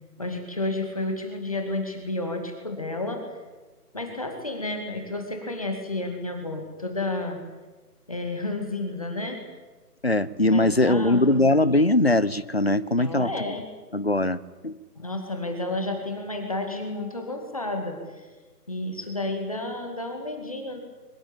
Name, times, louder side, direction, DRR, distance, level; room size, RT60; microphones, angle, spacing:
voice 1, 0.2-3.3 3.9-7.4 8.1-9.4 10.5-11.4 13.0-13.7 15.0-18.3 18.7-20.8, left 2 dB, 20° left, 4 dB, 2.4 m, -31 dB
voice 2, 10.0-13.5 13.9-14.4 14.6-14.7, left 1 dB, 40° left, 16 dB, 0.8 m, -21 dB
23.5 x 21.0 x 9.0 m, 1.2 s
figure-of-eight pair, 180°, 48 cm